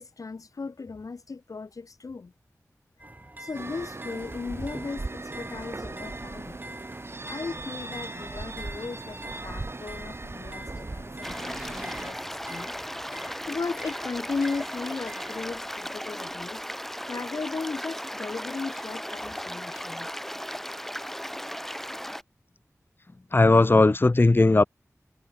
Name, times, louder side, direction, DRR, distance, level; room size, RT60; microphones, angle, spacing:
voice 1, 0.0-2.3 3.4-6.6 7.2-12.7 13.5-16.6 17.1-20.1, left 4 dB, 75° left, 1.3 m, -36 dB
sound 1, 3.0-15.6, right 1 dB, 30° right, 3.4 m, -45 dB
sound 2, 3.5-12.1, right 2 dB, 45° right, 1.8 m, -38 dB
sound 3, 11.2-22.2, equal, 5° left, 1.9 m, -36 dB
voice 2, 23.3-24.6, left 2 dB, 40° left, 0.8 m, -18 dB
cardioid pair, 45°, 6 cm